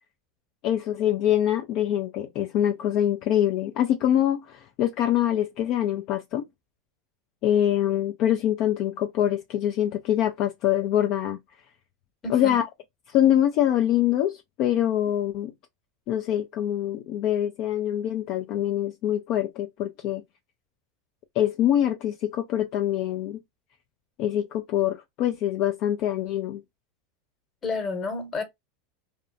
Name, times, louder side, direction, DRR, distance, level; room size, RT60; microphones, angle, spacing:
voice 1, 0.6-6.5 7.4-11.4 12.3-12.7 13.1-15.5 16.1-20.2 21.4-23.4 24.2-26.6, left 11 dB, 55° left, 0.3 m, -24 dB
voice 2, 12.2-12.6 27.6-28.4, left 3 dB, 30° left, 1.0 m, -30 dB
2.5 x 2.1 x 2.5 m
hypercardioid pair, 105°, 0 cm